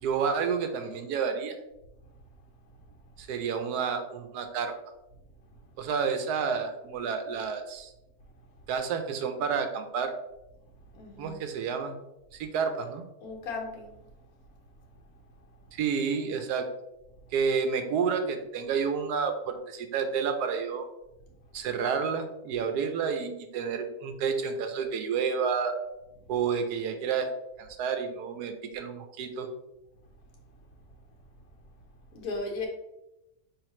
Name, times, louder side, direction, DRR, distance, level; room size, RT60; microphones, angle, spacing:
voice 1, 0.0-1.6 3.2-4.7 5.8-7.9 8.7-10.1 11.2-12.0 12.3-13.0 15.7-16.7 17.3-20.9 21.5-25.8 26.3-27.3 27.6-29.5, right 6 dB, 85° right, 7 dB, 1.1 m, -30 dB
voice 2, 10.9-11.4 13.2-14.0 32.1-32.7, left 3 dB, 70° left, 0 dB, 1.4 m, -36 dB
4.9 x 3.1 x 3.0 m, 0.92 s
omnidirectional pair, 1.7 m